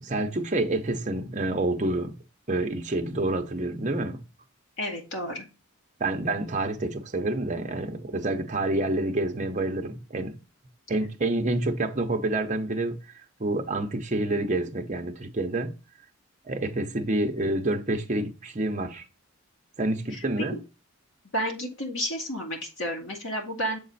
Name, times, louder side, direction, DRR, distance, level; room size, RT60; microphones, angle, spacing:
voice 1, 0.0-2.1 2.5-4.2 6.0-10.4 10.9-13.0 13.4-15.7 16.4-19.0 19.8-20.6, right 2 dB, 35° right, 0.7 m, -28 dB
voice 2, 4.8-5.4 11.0-11.1 20.1-20.2 21.3-23.8, equal, 65° left, 2.1 m, -31 dB
7.3 x 4.2 x 4.0 m
head